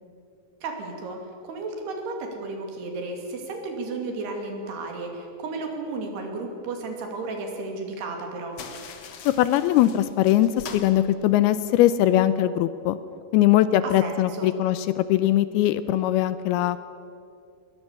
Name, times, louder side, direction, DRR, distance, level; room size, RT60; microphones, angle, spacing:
voice 1, 0.6-1.2 1.4-8.6 13.8-14.5, right 3 dB, 75° right, 3 dB, 4.6 m, -33 dB
sound 1, 8.5-11.9, left 6 dB, 55° left, 2.0 m, -43 dB
voice 2, 9.3-13.0 13.3-16.8, left 13 dB, 80° left, 14 dB, 2.5 m, -21 dB
21.0 x 20.0 x 7.3 m, 2.5 s
omnidirectional pair, 4.8 m